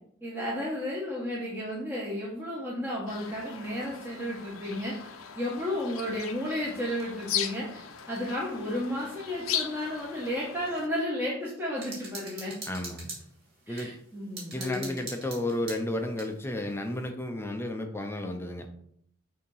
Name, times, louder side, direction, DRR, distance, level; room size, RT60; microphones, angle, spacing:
voice 1, 0.2-4.9 5.4-7.8 8.1-12.5 13.7-14.9, left 1 dB, 10° right, -5 dB, 1.0 m, -33 dB
sound 1, 3.1-10.9, left 9 dB, 90° left, 0.6 m, -38 dB
sound 2, 11.8-13.9 14.4-16.3, right 3 dB, 50° right, 2.4 m, -42 dB
voice 2, 12.7-13.1 13.7-13.9 14.5-18.7, left 1 dB, 10° left, 5 dB, 0.5 m, -32 dB
6.4 x 2.8 x 5.5 m, 0.68 s
head